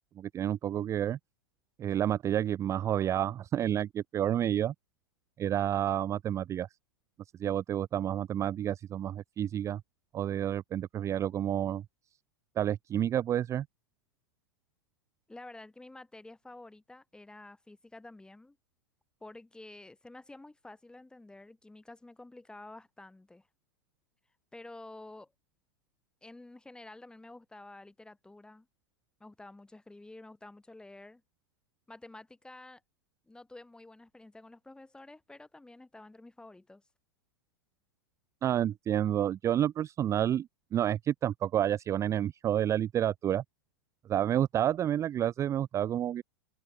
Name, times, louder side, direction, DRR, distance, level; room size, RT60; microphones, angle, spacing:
voice 1, 0.2-1.2 1.8-4.7 5.4-6.7 7.4-9.8 10.1-11.8 12.6-13.7 38.4-43.4 44.1-46.2, right 11 dB, 25° right, 0.4 m, -29 dB
voice 2, 15.3-18.6 19.2-23.5 24.5-25.3 26.2-28.7 29.2-31.2 31.9-32.8 33.3-36.8, left 2 dB, 5° left, 2.9 m, -50 dB
figure-of-eight pair, 95°, 13 cm